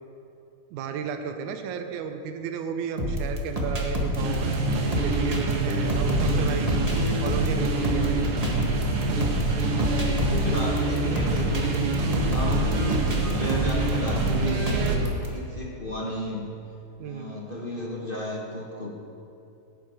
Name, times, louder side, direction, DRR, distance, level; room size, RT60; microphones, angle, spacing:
voice 1, 0.7-4.6 5.0-6.8 7.2-8.2 12.4-12.7 17.0-17.4, right 7 dB, 80° right, 6 dB, 2.2 m, -34 dB
sound 1, 3.0-15.3, equal, 20° right, 0.9 m, -28 dB
sound 2, 4.2-15.0, right 2 dB, 55° right, 2.0 m, -26 dB
voice 2, 6.2-6.8 9.6-11.7 12.2-16.4 17.0-19.1, equal, 55° left, -3 dB, 0.6 m, -34 dB
17.5 x 9.5 x 4.8 m, 2.7 s
omnidirectional pair, 3.5 m